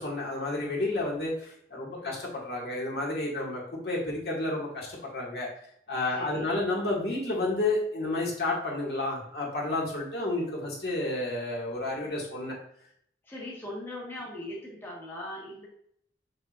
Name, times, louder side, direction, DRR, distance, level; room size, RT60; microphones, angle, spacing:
voice 1, 0.0-5.5 5.9-12.6, left 2 dB, 60° left, -3 dB, 2.1 m, -31 dB
voice 2, 6.1-6.5 13.2-15.7, left 1 dB, 15° left, -4 dB, 1.3 m, -40 dB
6.4 x 6.1 x 2.6 m, 0.68 s
head